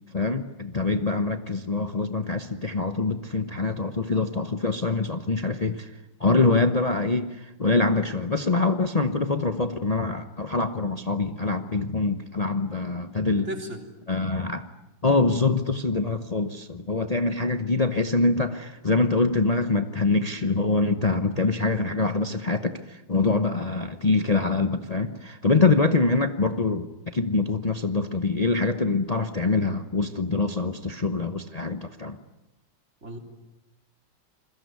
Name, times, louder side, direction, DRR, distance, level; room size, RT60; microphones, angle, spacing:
voice 1, 0.1-13.5 14.1-14.7 15.0-32.2, left 3 dB, 55° left, 8 dB, 0.4 m, -24 dB
voice 2, 13.4-13.9 33.0-33.2, right 1 dB, 30° right, 4 dB, 3.9 m, -34 dB
28.5 x 21.5 x 9.6 m, 1.0 s
omnidirectional pair, 2.3 m